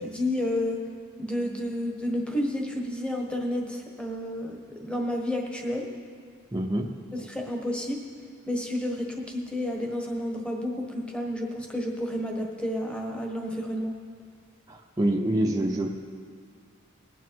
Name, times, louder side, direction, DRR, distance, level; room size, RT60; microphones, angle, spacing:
voice 1, 0.0-0.8 1.2-5.9 7.1-8.0 8.5-13.9, left 1 dB, 5° left, 1 dB, 1.3 m, -30 dB
voice 2, 6.5-6.9 14.7-15.9, right 1 dB, 15° right, 0 dB, 0.7 m, -26 dB
19.5 x 8.3 x 4.6 m, 2.1 s
head